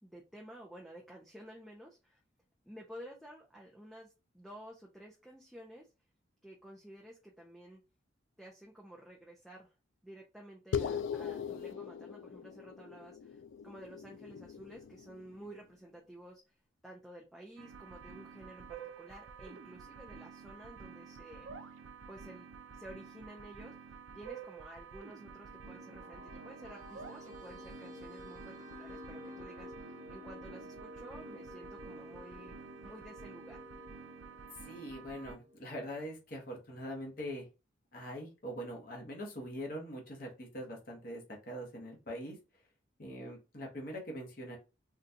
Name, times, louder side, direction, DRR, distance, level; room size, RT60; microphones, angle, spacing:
voice 1, 0.0-2.2 2.6-5.9 6.4-7.8 8.4-9.7 10.0-16.6 16.8-21.5 22.1-22.5 22.7-23.8 24.1-33.6 43.1-43.4, right 1 dB, ahead, -3 dB, 0.4 m, -52 dB
sound 1, 10.7-15.5, left 7 dB, 75° left, 0.3 m, -40 dB
sound 2, 17.6-35.4, right 5 dB, 85° right, 0.5 m, -50 dB
sound 3, 25.2-36.0, left 1 dB, 40° right, 0.8 m, -52 dB
voice 2, 34.6-37.5 37.9-42.6 43.0-44.6, equal, 45° left, -1 dB, 1.0 m, -43 dB
3.9 x 2.3 x 2.7 m, 0.29 s
head